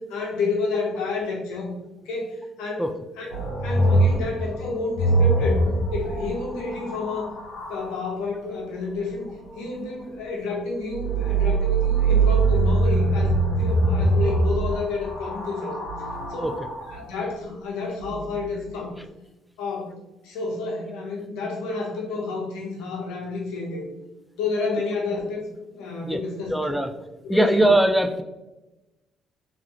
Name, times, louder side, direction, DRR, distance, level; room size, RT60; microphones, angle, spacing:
voice 1, 0.0-1.7 2.0-2.8 3.2-5.6 5.9-7.3 7.7-15.8 16.3-16.5 16.9-18.9 19.6-20.0 20.2-23.8 24.4-25.5 25.7-26.8 27.2-27.6, left 3 dB, 85° left, -1 dB, 1.1 m, -30 dB
sound 1, 3.3-7.9 10.9-17.0 18.0-18.6, right 3 dB, 70° left, 1.2 m, -23 dB
voice 2, 26.5-26.9 27.3-28.2, right 1 dB, ahead, 6 dB, 0.4 m, -20 dB
3.6 x 3.2 x 3.0 m, 1.0 s
supercardioid pair, 65°, 0 cm